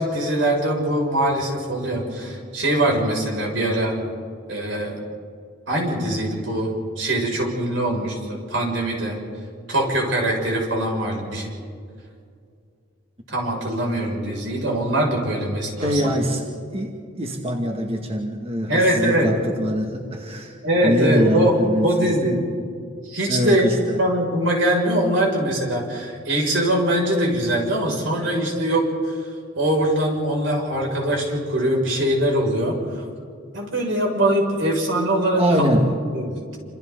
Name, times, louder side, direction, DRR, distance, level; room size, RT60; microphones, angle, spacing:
voice 1, 0.0-4.0 4.5-5.0 5.7-9.2 9.7-11.5 13.3-16.1 18.7-19.3 20.6-22.5 23.0-23.7 24.0-29.2 29.5-33.1 33.5-35.7 36.1-36.6, right 1 dB, 85° right, -1 dB, 6.3 m, -22 dB
voice 2, 15.8-16.4 16.7-22.2 23.3-24.0 35.3-35.9, equal, 35° right, 1 dB, 1.9 m, -23 dB
29.0 x 27.0 x 4.0 m, 2.3 s
head